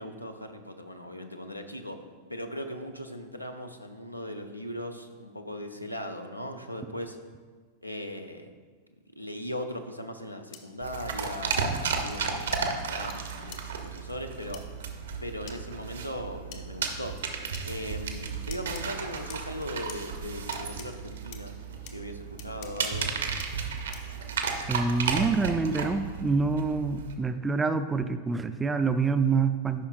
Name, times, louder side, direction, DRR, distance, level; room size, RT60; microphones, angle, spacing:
voice 1, 0.0-2.0 2.3-7.2 7.8-8.5 9.2-14.7 15.2-17.2 17.6-21.6 21.9-23.2, equal, 90° left, 6 dB, 0.6 m, -38 dB
sound 1, 10.5-10.6 11.5-11.6 12.5-12.6 13.1-13.2 13.5-13.6 14.5-14.6 15.5-15.6 16.5-16.6 17.5-17.7 18.5-18.8 19.3-20.0 20.5-20.9 21.3-21.4 21.9-22.0 22.4-22.9 23.4-23.5 23.9-24.2, left 8 dB, 45° left, 0.8 m, -44 dB
sound 2, 10.8-27.1, right 5 dB, 65° right, 0.8 m, -34 dB
voice 2, 24.7-29.9, right 4 dB, 15° right, 10 dB, 0.4 m, -26 dB
12.5 x 5.6 x 2.5 m, 1.5 s
figure-of-eight pair, 90°, 0 cm